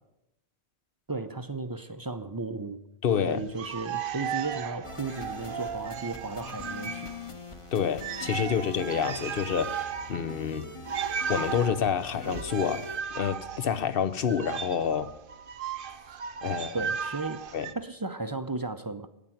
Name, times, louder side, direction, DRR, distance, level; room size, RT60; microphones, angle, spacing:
voice 1, 1.1-2.8 3.3-7.1 16.7-17.4 17.7-19.1, right 3 dB, 25° right, 10 dB, 0.6 m, -35 dB
voice 2, 3.0-3.4 7.7-10.7 11.3-12.9 13.1-15.1 16.4-16.8 17.5-17.7, left 7 dB, 60° left, 12 dB, 1.0 m, -28 dB
sound 1, 3.4-7.3 7.6-7.7 7.9-17.7, right 7 dB, 60° right, 0.8 m, -36 dB
sound 2, 4.8-13.0, left 3 dB, 30° left, 1.1 m, -43 dB
10.0 x 8.9 x 9.2 m, 0.88 s
omnidirectional pair, 1.1 m